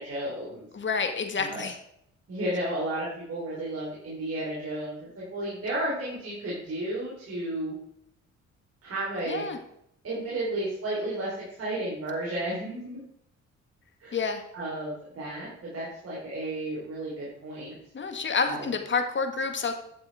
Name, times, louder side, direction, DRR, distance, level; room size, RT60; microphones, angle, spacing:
voice 1, 0.0-0.7 1.4-1.6 2.3-7.7 8.8-9.5 10.0-13.0 14.0-17.8 18.4-18.7, right 1 dB, 50° right, -7 dB, 4.3 m, -33 dB
voice 2, 0.7-1.8 9.3-9.6 14.1-14.4 17.9-19.7, left 5 dB, 40° left, 6 dB, 1.7 m, -28 dB
11.0 x 7.0 x 4.9 m, 0.75 s
cardioid pair, 90°, 30 cm